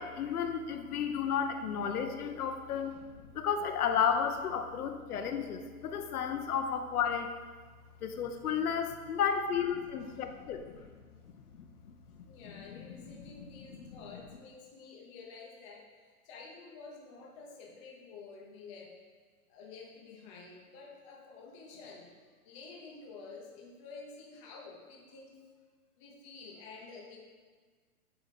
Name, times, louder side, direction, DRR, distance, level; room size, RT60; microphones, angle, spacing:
voice 1, 0.0-2.9 3.3-7.4 8.0-10.9 11.6-11.9 12.7-13.5 13.8-14.0, left 7 dB, 75° left, 6 dB, 0.7 m, -33 dB
voice 2, 10.0-10.8 12.2-18.9 19.5-22.1 22.4-25.4 26.0-27.2, left 4 dB, 20° left, -2 dB, 0.7 m, -50 dB
8.1 x 3.0 x 4.1 m, 1.5 s
hypercardioid pair, 150°, 45 cm